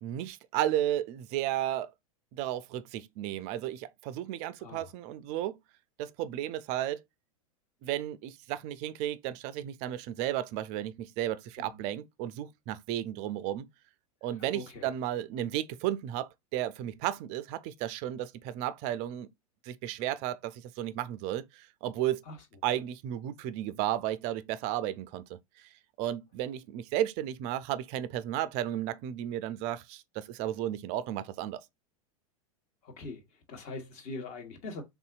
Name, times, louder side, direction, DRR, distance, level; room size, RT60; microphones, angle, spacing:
voice 1, 0.0-1.9 2.3-5.6 6.0-7.0 7.8-13.7 14.2-19.3 19.6-22.2 22.6-25.7 26.0-31.6, right 12 dB, 40° right, 0.4 m, -33 dB
voice 2, 14.5-14.9 22.3-22.4 32.8-33.2 33.5-34.8, left 3 dB, 40° left, 1.2 m, -42 dB
3.5 x 2.7 x 2.3 m
figure-of-eight pair, 95°, 18 cm